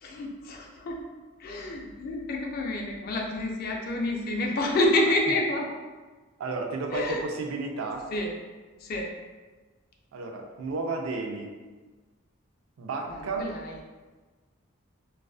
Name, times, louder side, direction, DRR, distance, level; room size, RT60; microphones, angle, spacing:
voice 1, 0.0-1.0 1.4-5.7 6.9-7.2 8.1-8.3 8.8-9.1 13.2-13.8, left 1 dB, 45° left, 1 dB, 0.3 m, -28 dB
voice 2, 6.4-8.1 10.1-11.6 12.8-13.5, right 3 dB, 80° right, 2 dB, 0.4 m, -32 dB
2.4 x 2.3 x 2.3 m, 1.3 s
head